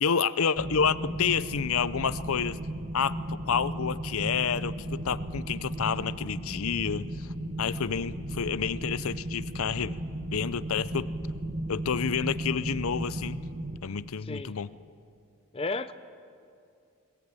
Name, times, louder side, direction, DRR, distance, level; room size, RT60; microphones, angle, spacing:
voice 1, 0.0-2.6 2.9-7.3 7.6-10.0 10.3-11.1 11.7-13.4 13.8-14.7, left 6 dB, 80° left, 16 dB, 0.6 m, -29 dB
sound 1, 0.6-13.8, right 1 dB, 45° right, 1.4 m, -35 dB
voice 2, 14.2-14.6 15.5-15.9, left 3 dB, 25° left, 12 dB, 0.5 m, -33 dB
21.0 x 20.0 x 9.0 m, 2.5 s
head